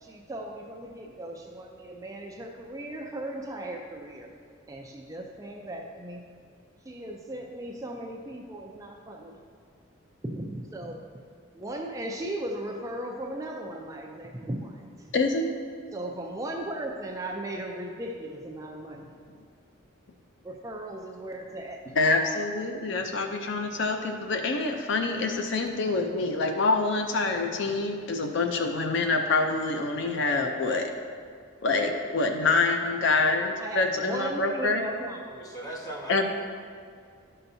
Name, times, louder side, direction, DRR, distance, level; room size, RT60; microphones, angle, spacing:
voice 1, 0.0-4.3 4.7-6.3 6.8-9.4 10.2-11.0 11.5-15.1 15.9-19.0 20.4-21.9 33.6-35.2, right 1 dB, 15° right, 1 dB, 0.4 m, -37 dB
voice 2, 15.1-15.5 21.9-30.9 31.6-34.8 36.1-36.3, left 3 dB, 60° left, 4 dB, 0.5 m, -26 dB
voice 3, 35.2-36.3, right 1 dB, 20° left, -3 dB, 1.2 m, -39 dB
12.0 x 5.6 x 2.7 m, 2.2 s
head